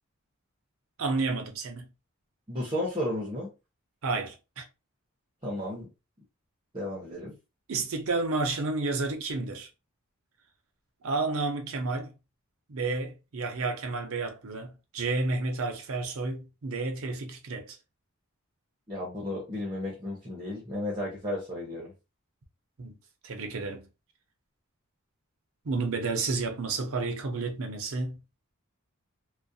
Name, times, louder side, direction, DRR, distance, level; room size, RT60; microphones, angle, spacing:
voice 1, 1.0-1.9 4.0-4.7 7.7-9.7 11.0-12.1 12.7-17.8 22.8-23.0 23.2-23.9 25.6-28.2, right 3 dB, 70° right, 0.6 m, -31 dB
voice 2, 2.5-3.5 5.4-5.9 6.7-7.4 18.9-21.9, left 1 dB, 20° right, 0.7 m, -33 dB
2.3 x 2.1 x 2.6 m
head